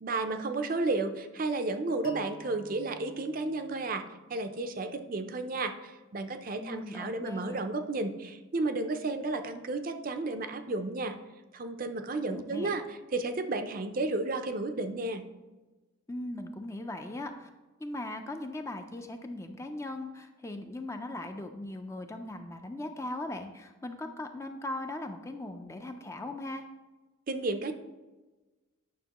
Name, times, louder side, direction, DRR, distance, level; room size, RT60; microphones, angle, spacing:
voice 1, 0.0-4.0 4.3-11.1 11.5-15.2 27.3-27.7, right 2 dB, 40° right, 8 dB, 0.5 m, -32 dB
sound 1, 2.0-5.0, equal, 75° left, 0.9 m, -53 dB
voice 2, 6.6-7.6 12.3-12.7 16.1-17.5 17.8-26.6, left 1 dB, 15° left, 5 dB, 0.4 m, -39 dB
9.3 x 5.9 x 2.9 m, 1.2 s
head